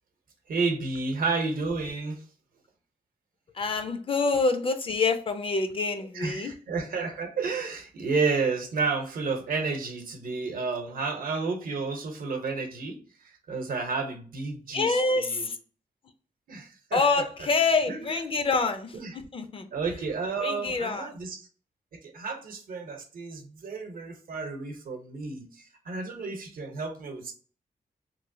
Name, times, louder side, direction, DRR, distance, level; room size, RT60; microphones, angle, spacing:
voice 1, 0.5-2.2 6.1-15.5 16.5-17.3 17.9-18.2 18.9-19.2 19.7-21.5 21.9-27.3, right 4 dB, 75° right, 5 dB, 0.8 m, -31 dB
voice 2, 3.5-6.5 14.7-15.6 16.9-19.0 19.3-19.7 20.4-21.1, left 4 dB, 35° left, 9 dB, 0.4 m, -26 dB
3.0 x 3.0 x 2.6 m, 0.40 s
wide cardioid pair, 140°, 15 cm